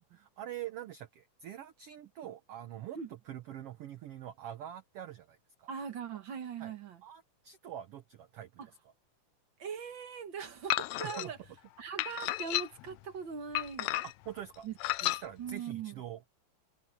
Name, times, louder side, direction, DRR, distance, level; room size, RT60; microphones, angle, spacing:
voice 1, 0.1-5.7 6.6-6.7 7.0-8.8 11.0-11.3 14.0-14.7 15.0-16.3, right 11 dB, 90° right, 1.3 m, -45 dB
voice 2, 5.7-7.0 9.6-11.4 11.8-13.9 14.6-14.7 15.0-15.1 15.4-15.9, right 7 dB, 55° right, 1.4 m, -40 dB
sound 1, 10.7-11.3 12.0-12.9 13.5-14.3 14.8-15.2, left 16 dB, 85° left, 1.5 m, -32 dB
omnidirectional pair, 3.8 m